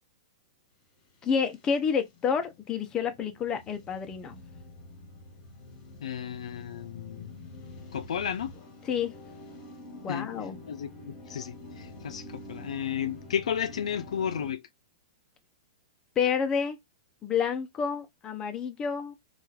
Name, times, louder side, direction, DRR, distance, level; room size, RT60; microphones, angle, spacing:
sound 1, 1.2-14.5, left 2 dB, 40° left, 1.3 m, -47 dB
voice 1, 1.2-4.4 8.8-9.1 10.0-10.6 16.2-16.8 17.2-19.1, left 6 dB, 20° left, 0.5 m, -29 dB
voice 2, 6.0-7.3 7.9-8.5 10.1-10.3 10.7-14.6, left 8 dB, 85° left, 0.4 m, -33 dB
3.0 x 2.4 x 2.3 m
hypercardioid pair, 135°, 3 cm